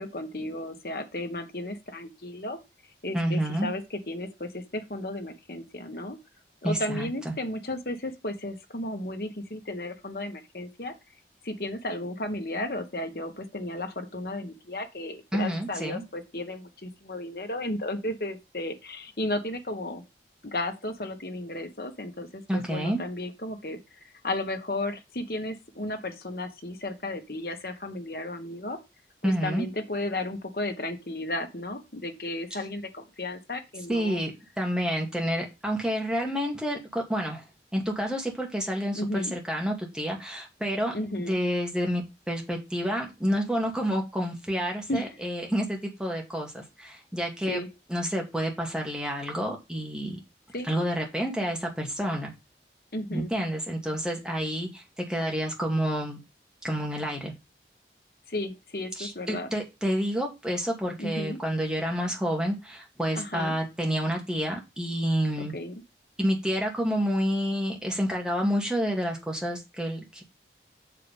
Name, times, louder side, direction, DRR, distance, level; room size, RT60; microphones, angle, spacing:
voice 1, 0.0-2.6 3.0-6.2 6.6-10.9 11.4-20.0 20.4-28.8 29.2-34.2 38.9-39.3 40.9-41.4 44.9-45.2 47.5-47.7 50.5-50.7 52.9-53.3 58.3-59.5 61.0-61.4 63.1-63.6 65.4-65.8, left 1 dB, 55° left, 1.5 m, -34 dB
voice 2, 3.1-3.7 6.6-7.4 15.3-16.0 22.5-23.0 29.2-29.7 33.9-34.3 34.6-37.4 37.7-47.6 47.9-50.2 50.6-52.3 53.1-56.2 56.6-57.3 59.0-65.5 66.2-70.2, equal, 5° right, 2.3 m, -29 dB
6.8 x 4.9 x 5.4 m
head